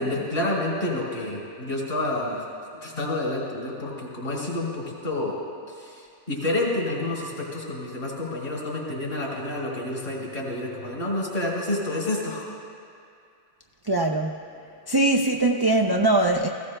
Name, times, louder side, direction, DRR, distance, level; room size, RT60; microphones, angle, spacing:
voice 1, 0.0-2.5 2.8-5.3 5.7-12.5, left 2 dB, 65° left, -5 dB, 3.5 m, -29 dB
voice 2, 13.8-14.4 14.9-16.5, right 2 dB, 35° right, 1 dB, 0.4 m, -21 dB
19.0 x 15.5 x 2.2 m, 2.4 s
omnidirectional pair, 1.1 m